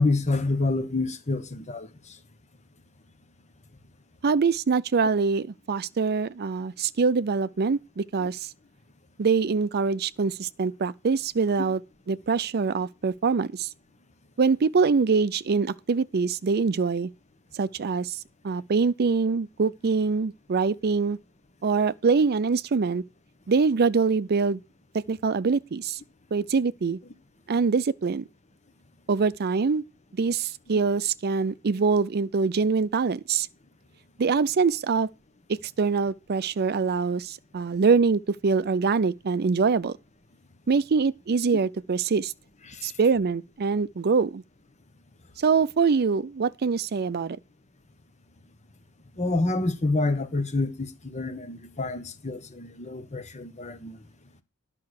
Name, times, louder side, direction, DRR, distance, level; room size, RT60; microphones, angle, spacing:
voice 1, 0.0-1.9 42.7-42.9 49.2-54.0, left 2 dB, 30° left, 1.3 m, -27 dB
voice 2, 4.2-8.5 9.2-11.8 12.1-13.7 14.4-17.1 17.5-18.2 18.4-21.2 21.6-23.0 23.5-24.6 25.1-26.0 26.3-27.0 27.5-28.2 29.1-29.8 30.1-33.5 34.2-35.1 35.8-39.9 40.7-42.3 42.8-44.4 45.4-47.4, right 5 dB, 45° right, 0.5 m, -24 dB
10.5 x 5.8 x 6.5 m
head